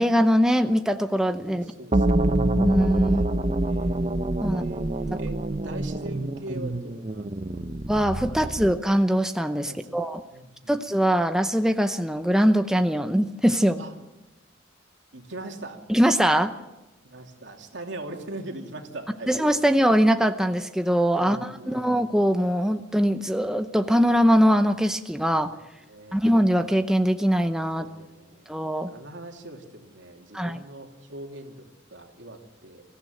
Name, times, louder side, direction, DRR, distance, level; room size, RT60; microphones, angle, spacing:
voice 1, 0.0-1.6 2.5-3.2 4.4-4.6 7.9-10.2 10.7-13.8 15.9-16.5 19.3-25.5 26.1-27.9 28.5-28.9 30.3-30.6, equal, 5° right, 7 dB, 0.7 m, -22 dB
voice 2, 1.5-2.4 3.1-7.6 8.3-8.7 9.7-10.0 10.3-10.7 13.8-13.9 15.1-15.8 17.0-19.3 21.2-21.9 25.4-25.5 25.8-26.2 27.8-28.5 28.9-32.8, right 2 dB, 75° right, 3 dB, 2.7 m, -41 dB
sound 1, 1.9-8.8, right 1 dB, 35° right, 0.8 m, -26 dB
23.5 x 15.5 x 7.9 m, 1.0 s
head